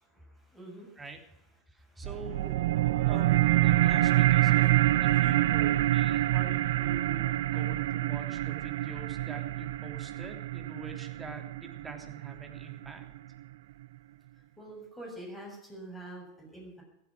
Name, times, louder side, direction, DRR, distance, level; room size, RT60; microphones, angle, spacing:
voice 1, 0.2-1.0 1.8-2.1 14.3-16.8, right 1 dB, 10° left, 0 dB, 7.3 m, -46 dB
voice 2, 1.7-2.6 3.0-13.1, right 3 dB, 15° right, 4 dB, 3.3 m, -46 dB
sound 1, 2.0-13.0, right 15 dB, 70° right, 0.7 m, -26 dB
15.5 x 11.5 x 6.2 m, 0.84 s
hypercardioid pair, 90°, 0 cm